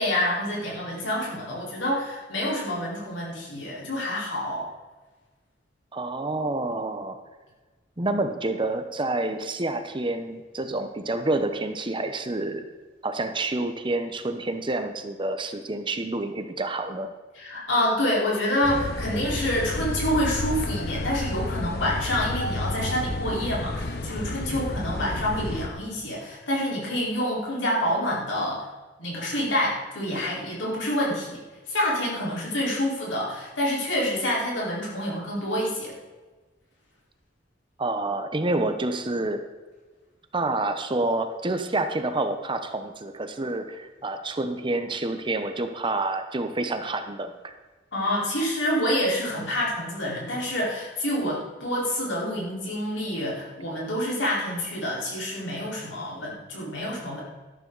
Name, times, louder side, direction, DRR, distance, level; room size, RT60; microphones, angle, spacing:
voice 1, 0.0-4.7 17.4-28.6 29.0-31.4 31.7-35.9 47.9-57.2, left 1 dB, 75° left, -4 dB, 4.5 m, -27 dB
voice 2, 5.9-7.2 8.0-12.6 13.0-17.1 24.5-24.6 37.8-39.5 40.3-47.5, right 2 dB, 25° right, 8 dB, 0.8 m, -28 dB
sound 1, 18.6-25.7, left 2 dB, 55° left, 0.9 m, -31 dB
12.5 x 12.0 x 4.0 m, 1.3 s
head